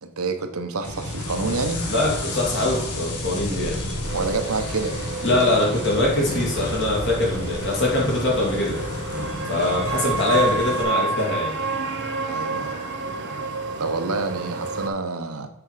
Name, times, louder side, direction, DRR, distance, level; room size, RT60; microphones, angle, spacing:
voice 1, 0.0-1.8 4.1-5.0 9.9-10.1 12.3-12.8 13.8-15.5, right 3 dB, 70° right, 6 dB, 0.9 m, -28 dB
sound 1, 0.8-10.8, left 1 dB, 90° left, 1.6 m, -31 dB
voice 2, 1.9-3.8 5.2-8.8 9.5-11.5, left 2 dB, 55° left, -2 dB, 2.5 m, -22 dB
sound 2, 4.0-14.9, right 3 dB, 55° right, 1.2 m, -30 dB
7.8 x 4.5 x 4.9 m, 0.81 s
head